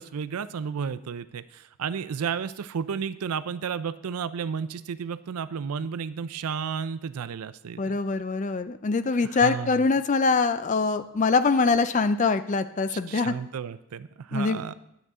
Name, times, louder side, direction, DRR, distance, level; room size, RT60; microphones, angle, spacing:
voice 1, 0.0-7.9 9.3-9.8 12.9-14.7, right 6 dB, 85° right, 14 dB, 0.4 m, -32 dB
voice 2, 7.8-13.3 14.3-14.6, left 4 dB, 35° left, 11 dB, 0.4 m, -24 dB
10.5 x 8.1 x 3.6 m, 0.81 s
head